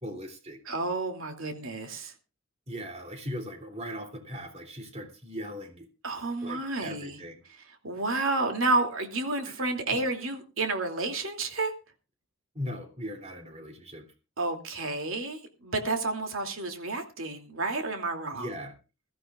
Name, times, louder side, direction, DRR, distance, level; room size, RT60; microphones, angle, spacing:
voice 1, 0.0-0.6 2.7-5.8 6.4-7.4 9.4-9.5 9.9-10.0 12.5-14.0 18.3-18.7, equal, 30° right, 3.0 m, -39 dB
voice 2, 0.6-2.1 6.0-7.2 7.5-11.7 14.4-18.5, right 3 dB, 90° right, 2.7 m, -30 dB
21.5 x 14.0 x 2.4 m
head